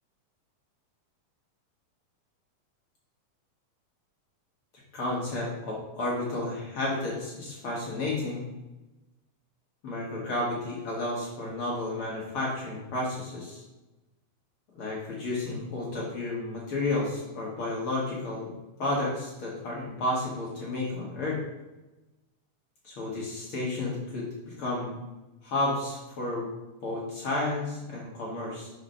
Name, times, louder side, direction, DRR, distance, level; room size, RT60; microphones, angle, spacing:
voice 1, 4.9-8.4 9.8-13.6 14.7-18.5 18.8-21.4 22.8-24.9 25.4-26.5 26.8-28.7, left 2 dB, 50° left, -5 dB, 1.8 m, -32 dB
5.0 x 4.9 x 5.4 m, 1.0 s
omnidirectional pair, 3.8 m